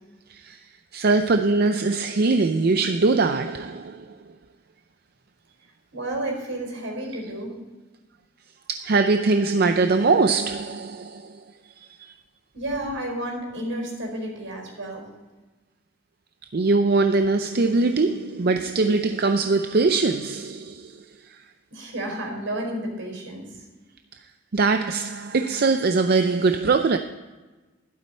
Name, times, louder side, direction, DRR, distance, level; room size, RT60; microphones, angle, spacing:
voice 1, 0.9-4.0 8.7-11.3 16.5-20.9 24.5-27.0, right 3 dB, 55° right, 0.5 m, -21 dB
voice 2, 5.9-7.5 12.5-15.1 21.7-23.6, right 1 dB, 75° right, 4.9 m, -31 dB
12.0 x 12.0 x 4.2 m
head